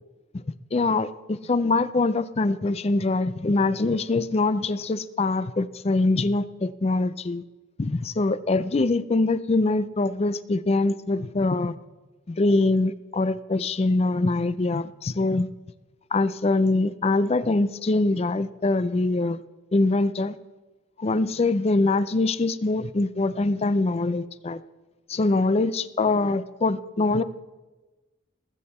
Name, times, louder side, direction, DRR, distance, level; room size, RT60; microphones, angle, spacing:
voice 1, 0.7-7.4 7.8-11.7 12.3-15.5 16.1-19.4 19.7-20.4 21.0-24.6 25.1-27.2, left 2 dB, 30° left, 15 dB, 0.4 m, -23 dB
20.0 x 7.8 x 4.2 m, 1.2 s
head